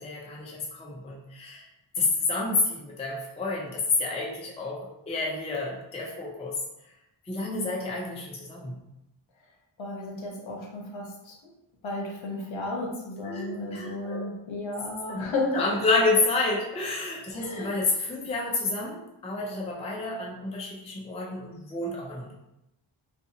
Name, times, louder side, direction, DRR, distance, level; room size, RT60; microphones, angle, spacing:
voice 1, 0.0-1.7 1.9-6.9 7.2-8.9 13.2-14.3 15.1-15.3 15.5-22.3, left 3 dB, 15° left, -3 dB, 0.4 m, -29 dB
voice 2, 9.8-11.5 11.8-15.8 17.3-17.7, left 2 dB, 70° left, -1 dB, 0.8 m, -33 dB
2.7 x 2.3 x 2.6 m, 0.89 s
wide cardioid pair, 150°, 49 cm